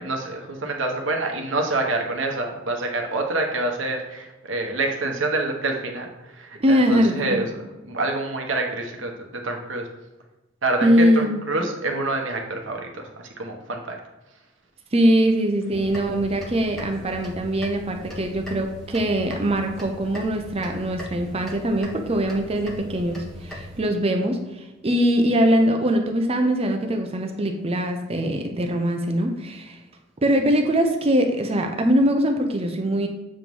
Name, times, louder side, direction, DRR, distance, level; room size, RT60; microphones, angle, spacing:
voice 1, 0.0-9.9 10.6-14.0, right 2 dB, 65° right, 2 dB, 1.1 m, -27 dB
voice 2, 6.6-7.5 10.8-11.4 14.9-29.8 30.2-33.1, equal, 30° right, 4 dB, 0.6 m, -22 dB
sound 1, 15.7-23.8, equal, ahead, 1.1 m, -39 dB
7.6 x 3.1 x 5.3 m, 1.1 s
head